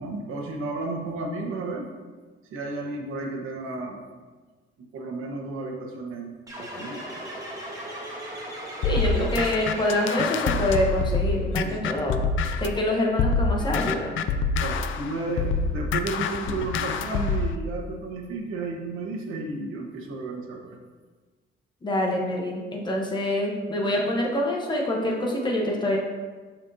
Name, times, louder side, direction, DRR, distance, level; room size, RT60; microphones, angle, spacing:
voice 1, 0.0-1.9 2.5-4.1 4.9-7.1 11.6-12.0 14.6-20.8, right 3 dB, 90° right, 1 dB, 1.2 m, -33 dB
sound 1, 6.5-10.6, equal, 15° right, 1.1 m, -37 dB
sound 2, 8.8-12.8 13.2-17.6, left 4 dB, 75° left, 0.5 m, -26 dB
voice 2, 8.8-12.2 12.6-14.1 21.8-26.0, left 1 dB, 20° left, -1 dB, 0.9 m, -26 dB
11.5 x 4.4 x 2.7 m, 1.4 s
cardioid pair, 180°, 21 cm